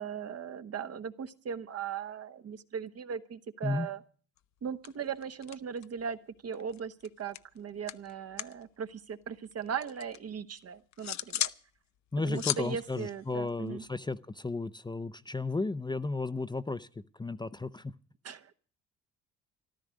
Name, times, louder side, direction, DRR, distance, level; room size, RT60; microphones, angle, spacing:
voice 1, 0.0-4.0 4.6-11.5 12.3-13.8 18.2-18.5, right 7 dB, 55° right, 1.2 m, -38 dB
sound 1, 4.4-4.6 4.8-6.1 6.3-8.6 8.9-10.2 10.6-11.6 12.0-14.1, left 12 dB, 65° left, 0.6 m, -38 dB
voice 2, 12.1-17.9, left 3 dB, 15° left, 0.6 m, -34 dB
14.0 x 12.5 x 6.4 m
cardioid pair, 90°, 30 cm